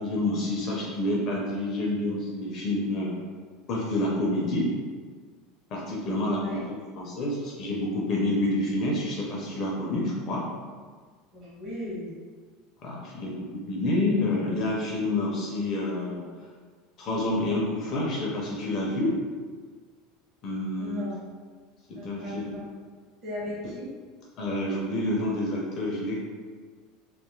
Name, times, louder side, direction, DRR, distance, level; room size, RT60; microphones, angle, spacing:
voice 1, 0.0-3.1 3.7-4.7 5.7-6.6 7.0-10.4 12.8-16.2 17.0-19.2 20.4-21.0 21.9-22.5 24.4-26.3, left 1 dB, 30° left, -3 dB, 0.4 m, -28 dB
voice 2, 6.3-6.7 11.3-12.1 20.8-21.2 21.9-22.7 23.2-23.9, left 1 dB, 25° right, -7 dB, 0.8 m, -36 dB
2.5 x 2.2 x 3.0 m, 1.6 s
cardioid pair, 180°, 0 cm